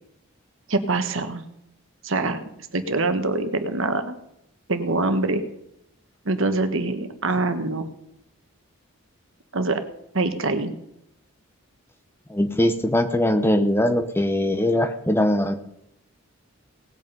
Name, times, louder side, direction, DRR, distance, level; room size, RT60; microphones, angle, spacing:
voice 1, 0.7-1.4 2.0-2.4 2.7-4.2 4.7-5.4 6.2-7.9 9.5-9.8 10.1-10.7, right 2 dB, 65° right, 8 dB, 1.3 m, -24 dB
voice 2, 12.3-15.5, left 1 dB, 10° left, 8 dB, 0.8 m, -21 dB
18.0 x 8.4 x 5.4 m, 0.80 s
head